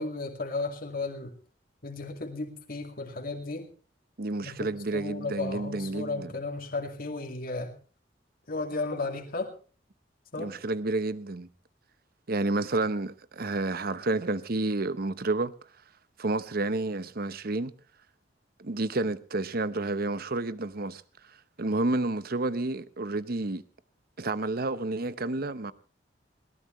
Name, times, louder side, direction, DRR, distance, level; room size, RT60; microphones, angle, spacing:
voice 1, 0.0-1.4 1.8-3.7 4.4-7.7 8.5-9.5 10.3-10.5, left 3 dB, 55° left, 2.3 m, -34 dB
voice 2, 4.2-6.3 8.7-9.0 10.4-11.5 12.3-15.5 16.2-17.7 18.6-21.0 21.6-23.6 24.2-25.7, right 2 dB, 55° right, 1.0 m, -30 dB
21.0 x 18.0 x 3.2 m
head